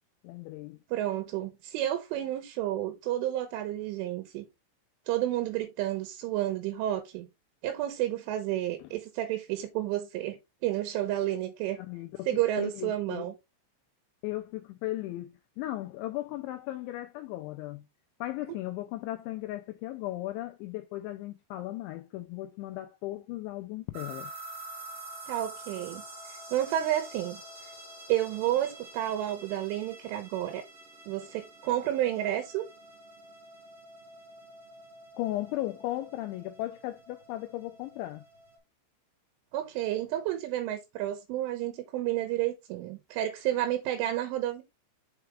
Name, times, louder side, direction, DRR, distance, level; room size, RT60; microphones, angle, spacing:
voice 1, 0.2-0.8 8.8-8.9 11.8-13.3 14.2-17.8 18.2-24.3 35.2-38.2, left 16 dB, 90° left, 2.6 m, -36 dB
voice 2, 0.9-4.5 5.1-7.3 7.6-11.8 12.3-13.3 18.5-18.6 25.3-27.4 28.1-30.6 31.1-32.6 39.5-44.6, right 13 dB, 80° right, 3.3 m, -31 dB
sound 1, 23.9-38.6, right 2 dB, 55° right, 1.8 m, -48 dB
6.8 x 4.8 x 3.3 m
omnidirectional pair, 5.9 m